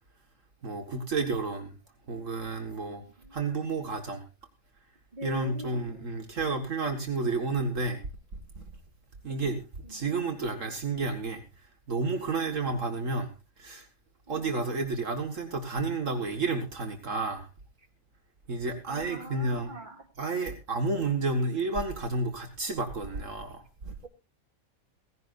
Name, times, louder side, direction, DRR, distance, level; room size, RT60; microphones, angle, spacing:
voice 1, 0.6-1.8 2.1-3.0 3.3-4.2 5.2-8.0 8.6-8.7 9.2-9.6 9.9-13.3 13.6-13.9 14.3-17.5 18.5-19.7 20.2-24.0, right 3 dB, 60° right, 2.1 m, -31 dB
voice 2, 2.9-3.7 5.1-5.8 9.8-10.2 14.3-14.5 18.9-20.0 24.0-24.1, right 1 dB, 35° right, 2.4 m, -44 dB
17.0 x 16.0 x 2.5 m
omnidirectional pair, 1.5 m